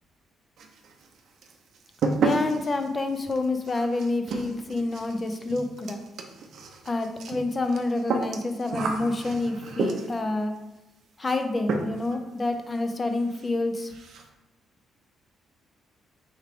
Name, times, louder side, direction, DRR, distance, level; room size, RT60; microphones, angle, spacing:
sound 1, 0.6-1.1 1.4-10.3 11.3-11.4 11.7-12.2 12.4-12.5 12.9-13.0 13.3-13.5 13.8-14.3, right 3 dB, 65° right, 0.6 m, -31 dB
voice 1, 2.2-6.0 6.9-10.5 11.2-13.9, left 2 dB, 25° left, 6 dB, 0.6 m, -28 dB
3.5 x 3.2 x 4.7 m, 0.98 s
cardioid pair, 90°, 0 cm